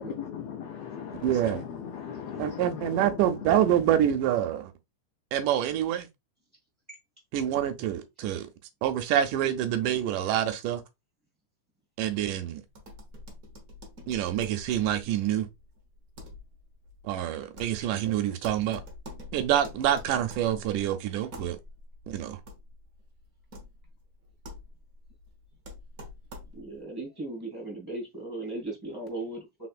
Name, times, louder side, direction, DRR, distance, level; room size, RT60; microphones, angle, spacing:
voice 1, 0.0-3.8, left 8 dB, 80° left, 1.4 m, -38 dB
voice 2, 1.2-1.6 2.4-4.7 5.3-6.1 7.3-8.5 8.8-10.8 12.0-12.6 14.1-15.5 17.0-18.8 19.3-21.6 22.1-22.4, right 11 dB, 85° right, 2.3 m, -26 dB
sound 1, 12.7-26.8, left 1 dB, 65° right, 0.8 m, -47 dB
voice 3, 26.5-29.7, right 2 dB, 10° right, 1.7 m, -37 dB
4.3 x 4.3 x 2.4 m
omnidirectional pair, 3.6 m